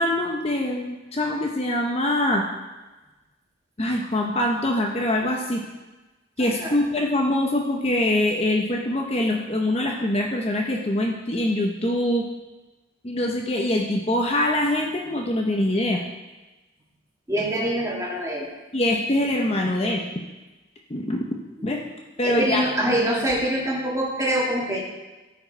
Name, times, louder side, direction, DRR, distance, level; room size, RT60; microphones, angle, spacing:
voice 1, 0.0-2.4 3.8-5.6 6.4-12.3 13.0-16.0 18.7-20.0 20.9-21.2 21.6-21.8 22.2-22.6, left 1 dB, 30° left, 0 dB, 0.7 m, -24 dB
voice 2, 6.4-6.8 17.3-18.5 21.7-21.8 22.2-24.8, right 1 dB, 15° right, -4 dB, 1.7 m, -25 dB
14.0 x 4.8 x 4.4 m, 1.1 s
head